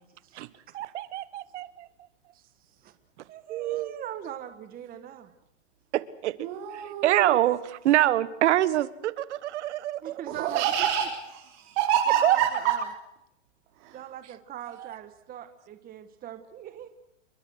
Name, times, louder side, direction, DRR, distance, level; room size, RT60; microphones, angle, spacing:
voice 1, 0.7-1.9 3.5-3.9 5.9-6.3 6.7-10.2 12.2-12.4 14.7-14.9, right 14 dB, 65° right, 16 dB, 1.6 m, -25 dB
voice 2, 3.3-5.3 10.0-10.9 12.1-12.8 13.9-16.9, right 10 dB, 25° right, 9 dB, 1.5 m, -41 dB
voice 3, 6.4-7.4 10.3-12.8 13.8-14.0, right 9 dB, 50° right, 1 dB, 4.3 m, -27 dB
29.5 x 23.0 x 6.5 m, 0.84 s
hypercardioid pair, 130°, 37 cm